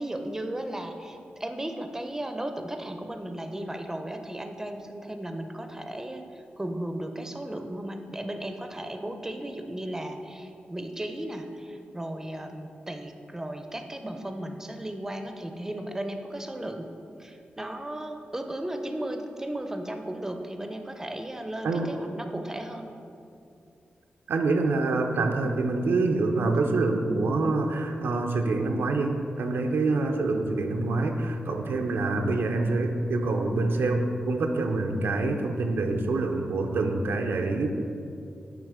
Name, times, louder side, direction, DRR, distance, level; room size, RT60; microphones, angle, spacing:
voice 1, 0.0-16.9 17.2-22.9, right 1 dB, 15° right, 6 dB, 0.5 m, -35 dB
voice 2, 24.3-37.7, right 3 dB, 85° right, 4 dB, 0.5 m, -26 dB
7.4 x 2.9 x 4.9 m, 2.6 s
cardioid pair, 75°, 4 cm